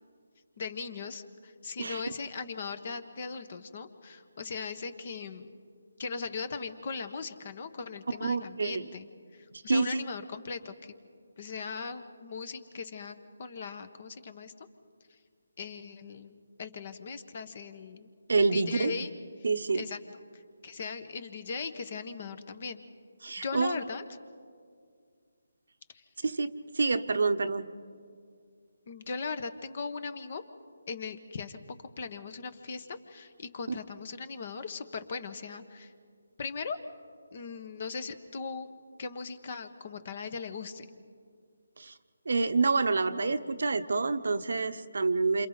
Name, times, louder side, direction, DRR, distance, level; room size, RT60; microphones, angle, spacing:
voice 1, 0.6-5.6 6.0-10.9 11.4-14.7 15.6-18.1 18.5-19.1 19.7-20.0 20.3-22.8 23.4-24.0 25.9-26.0 28.9-30.4 30.9-31.6 32.0-35.9 36.4-36.8 37.3-38.7 39.0-41.0, left 5 dB, 45° left, 12 dB, 1.3 m, -39 dB
voice 2, 8.2-8.9 9.5-10.0 18.3-18.9 19.4-19.9 23.2-23.7 26.2-27.7 41.8-41.9 42.3-45.5, right 4 dB, 65° right, 9 dB, 0.9 m, -28 dB
28.0 x 27.5 x 4.1 m, 2.2 s
figure-of-eight pair, 155°, 0 cm